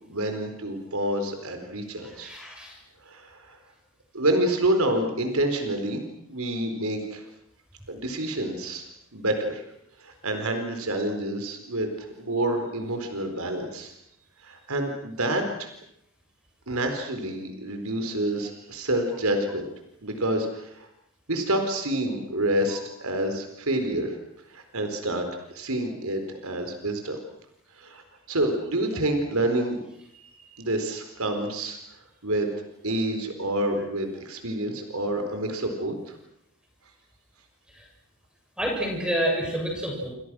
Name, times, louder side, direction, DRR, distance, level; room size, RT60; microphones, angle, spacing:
voice 1, 0.1-2.3 3.0-3.6 4.1-6.0 6.3-7.2 7.9-8.8 9.1-9.6 10.0-13.9 14.4-15.7 16.7-19.7 20.0-20.9 21.3-24.2 24.5-27.2 27.8-28.0 28.3-29.8 30.1-31.8 32.2-32.5 32.8-36.2, right 1 dB, 85° right, 5 dB, 4.3 m, -28 dB
voice 2, 2.2-2.8 37.7-37.8 38.6-40.1, equal, 5° right, 0 dB, 7.1 m, -28 dB
28.5 x 28.0 x 6.3 m, 0.76 s
head